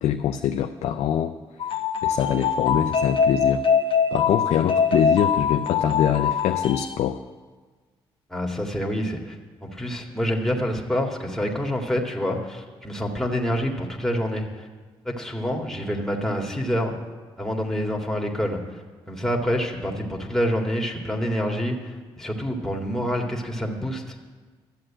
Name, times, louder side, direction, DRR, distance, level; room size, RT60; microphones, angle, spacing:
voice 1, 0.0-1.4 2.0-3.6 4.1-7.2, left 10 dB, 75° left, 7 dB, 0.5 m, -24 dB
sound 1, 1.6-7.0, left 6 dB, 50° left, 1.0 m, -23 dB
voice 2, 8.3-9.4 9.6-14.7 15.0-16.9 17.4-18.8 19.1-24.1, equal, 5° left, -1 dB, 2.1 m, -27 dB
12.0 x 7.7 x 8.6 m, 1.4 s
supercardioid pair, 55°, 11 cm